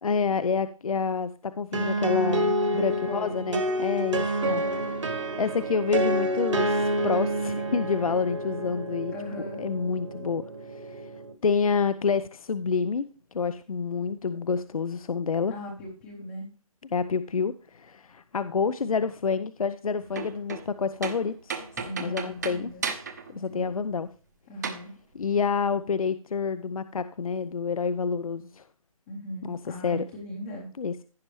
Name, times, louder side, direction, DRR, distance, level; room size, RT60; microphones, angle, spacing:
voice 1, 0.0-4.6 5.4-9.1 9.6-10.4 10.9-11.0 11.4-13.1 13.3-15.5 16.9-21.6 22.0-22.7 23.4-24.1 25.1-28.6 29.4-30.0 30.8-30.9, left 5 dB, 70° left, 13 dB, 0.6 m, -28 dB
sound 1, 1.7-11.3, right 1 dB, 55° right, 1.7 m, -28 dB
voice 2, 2.6-3.4 4.4-4.8 9.1-9.6 15.5-16.5 21.7-22.9 23.3-23.8 24.5-24.9 29.1-30.7, equal, 10° left, 0 dB, 0.8 m, -39 dB
sound 2, 20.0-20.8 21.0-23.4 23.6-23.7 24.6-24.8, right 5 dB, 30° right, 0.9 m, -34 dB
15.5 x 5.4 x 3.1 m, 0.37 s
figure-of-eight pair, 170°, 19 cm